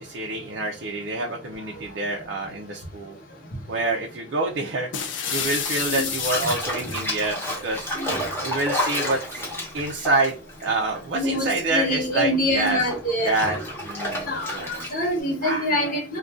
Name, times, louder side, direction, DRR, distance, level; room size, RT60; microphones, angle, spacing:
voice 1, 0.0-3.2 3.7-4.9 5.3-7.9 8.4-9.5 9.7-12.8 13.2-14.7 15.4-15.7, right 2 dB, 60° right, 0 dB, 0.5 m, -27 dB
sound 1, 4.9-7.1, left 8 dB, 70° left, 0.5 m, -29 dB
Bathtub (filling or washing), 5.5-11.4 11.6-15.2, left 1 dB, 10° left, 0.8 m, -31 dB
voice 2, 11.1-13.4 14.3-16.2, left 1 dB, 45° left, 0 dB, 1.0 m, -25 dB
2.5 x 2.2 x 3.4 m, 0.36 s
head